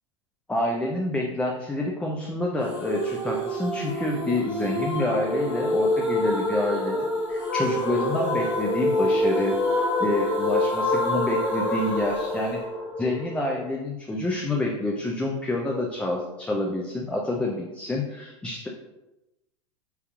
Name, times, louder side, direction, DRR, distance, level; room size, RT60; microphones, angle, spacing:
voice 1, 0.5-12.6 13.0-18.7, left 1 dB, 5° left, -1 dB, 0.3 m, -28 dB
sound 1, 2.7-13.6, left 1 dB, 10° right, 1.1 m, -26 dB
3.7 x 2.7 x 2.3 m, 0.98 s
hypercardioid pair, 110°, 16 cm